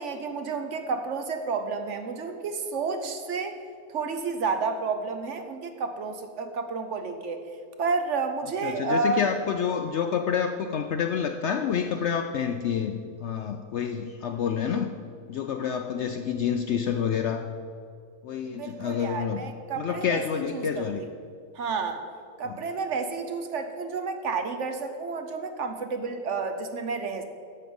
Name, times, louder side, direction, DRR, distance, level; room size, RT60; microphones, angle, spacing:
voice 1, 0.0-3.6 3.9-7.4 7.8-9.2 18.5-20.8 21.5-22.0 22.4-27.2, right 4 dB, 60° right, 7 dB, 1.0 m, -30 dB
voice 2, 8.6-14.9 15.3-17.5 18.2-19.4 19.8-21.0 22.4-22.5, left 7 dB, 65° left, 7 dB, 0.7 m, -28 dB
11.0 x 7.6 x 5.3 m, 2.3 s
omnidirectional pair, 1.6 m